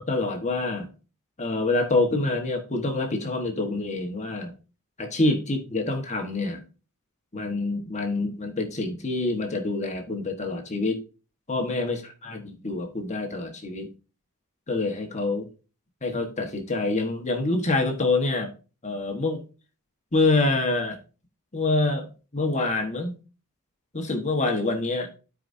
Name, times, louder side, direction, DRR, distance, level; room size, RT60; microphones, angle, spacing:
voice 1, 0.1-0.9 1.4-4.5 5.0-6.6 7.3-11.0 11.5-13.9 14.7-15.5 16.0-18.5 18.8-19.4 20.1-21.0 21.5-23.1 23.9-25.1, left 2 dB, 30° left, 4 dB, 1.4 m, -26 dB
13.0 x 4.9 x 2.7 m, 0.33 s
head